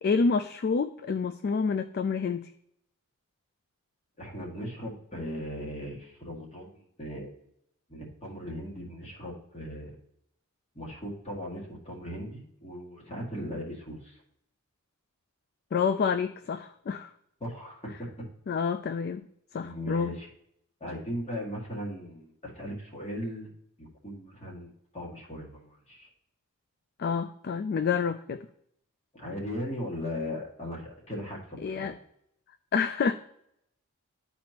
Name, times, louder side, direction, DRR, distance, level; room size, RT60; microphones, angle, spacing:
voice 1, 0.0-2.5 15.7-17.1 18.5-19.3 19.5-20.1 27.0-28.5 31.6-31.9 32.7-33.1, left 5 dB, 45° left, 10 dB, 0.3 m, -28 dB
voice 2, 4.2-7.3 7.9-10.0 10.8-14.2 17.4-18.1 19.6-20.3 20.8-23.5 23.8-26.1 29.1-31.9, equal, 30° left, -1 dB, 1.9 m, -38 dB
11.5 x 4.2 x 2.9 m, 0.74 s
head